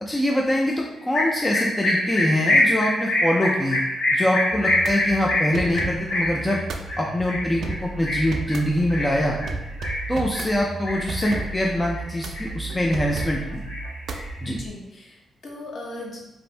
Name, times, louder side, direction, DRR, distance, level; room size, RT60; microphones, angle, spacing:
voice 1, 0.0-3.8 4.1-6.6 7.0-9.4 10.1-13.6 14.4-14.6, left 1 dB, 15° left, -1 dB, 0.3 m, -24 dB
sound 1, 1.1-10.5 10.9-11.6 11.9-12.9 13.1-14.5, left 1 dB, 80° left, 1.1 m, -25 dB
sound 2, 4.5-14.7, right 3 dB, 65° right, 0.3 m, -34 dB
voice 2, 14.5-16.3, left 1 dB, 55° left, -2 dB, 0.8 m, -38 dB
2.6 x 2.5 x 3.2 m, 0.96 s
cardioid pair, 130°, 0 cm